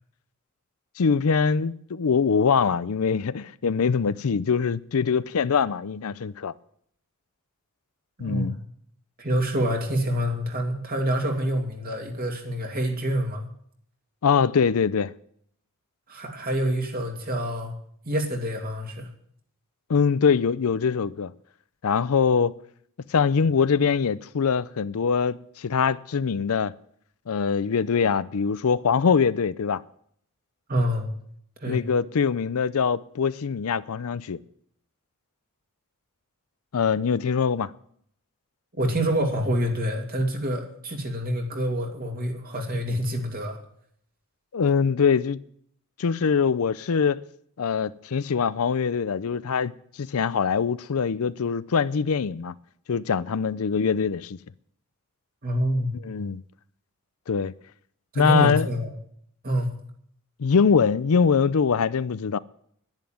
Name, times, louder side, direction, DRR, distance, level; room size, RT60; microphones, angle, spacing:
voice 1, 1.0-6.5 8.2-8.6 14.2-15.1 19.9-21.3 21.8-22.5 23.1-26.7 27.3-29.8 31.7-34.4 36.7-37.7 44.5-45.4 46.0-47.2 47.6-49.7 50.0-52.5 52.9-54.4 56.0-56.4 57.3-57.5 58.2-58.7 60.4-62.4, left 6 dB, 70° left, 0.5 m, -23 dB
voice 2, 8.2-8.6 9.2-13.5 16.1-17.7 18.0-19.1 30.7-31.1 31.6-31.8 38.8-43.6 55.4-55.9 58.1-59.0 59.4-59.7, right 1 dB, 40° right, 2.8 m, -27 dB
11.0 x 10.5 x 9.2 m
head